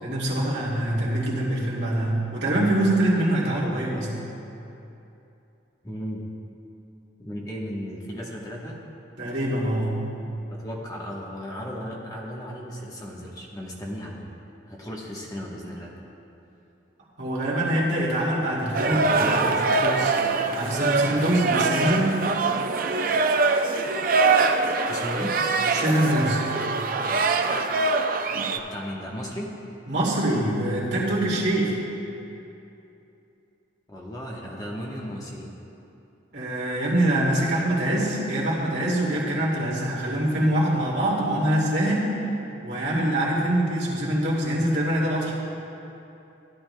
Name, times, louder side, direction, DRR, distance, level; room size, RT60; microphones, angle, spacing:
voice 1, 0.0-4.2 9.2-10.1 17.2-19.4 19.8-20.1 20.5-22.2 25.7-26.4 29.9-31.8 36.3-42.2 42.6-45.3, right 1 dB, 65° right, -6 dB, 2.3 m, -24 dB
voice 2, 5.8-6.2 7.2-8.8 10.5-14.3 14.7-15.9 18.9-19.6 24.9-25.4 28.7-29.5 33.9-35.6, equal, 20° left, -3 dB, 1.0 m, -35 dB
sound 1, 18.7-28.6, right 3 dB, 45° right, 0.4 m, -23 dB
15.5 x 11.0 x 2.2 m, 2.8 s
head